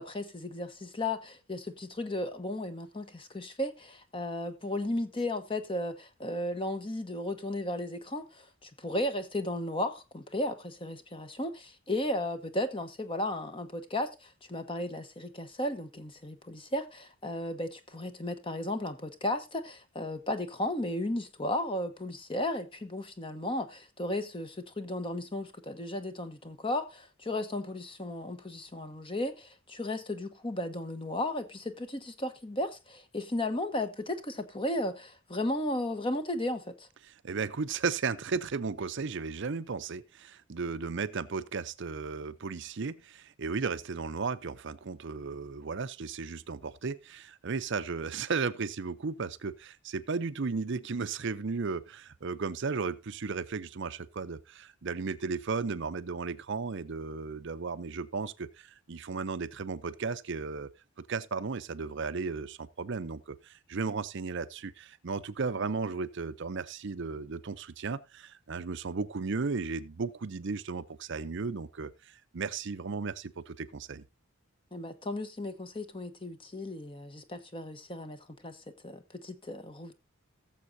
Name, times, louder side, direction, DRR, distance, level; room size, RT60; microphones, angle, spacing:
voice 1, 0.0-36.9 74.7-78.6 78.8-79.9, left 1 dB, 25° left, 1.0 m, -35 dB
voice 2, 37.1-60.7 61.1-74.0, right 4 dB, 55° right, 0.6 m, -35 dB
18.0 x 7.3 x 2.7 m
head